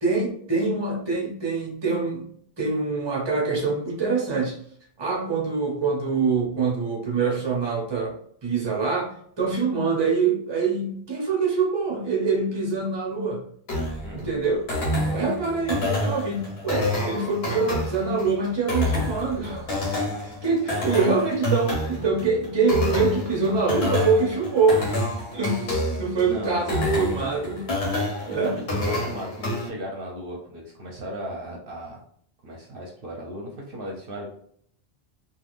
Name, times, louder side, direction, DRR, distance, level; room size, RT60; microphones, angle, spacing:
voice 1, 0.0-2.3 2.6-4.6 5.0-8.2 8.4-13.4 14.1-14.7 15.0-19.7 20.2-25.0 25.3-25.7 26.0-27.7 28.3-28.5, right 4 dB, 25° right, -2 dB, 0.8 m, -24 dB
sound 1, 13.7-29.7, left 1 dB, 75° left, 1.1 m, -28 dB
voice 2, 26.3-26.7 28.2-32.0 32.4-34.3, equal, 60° right, -1 dB, 0.9 m, -36 dB
3.4 x 2.5 x 2.5 m, 0.63 s
omnidirectional pair, 1.1 m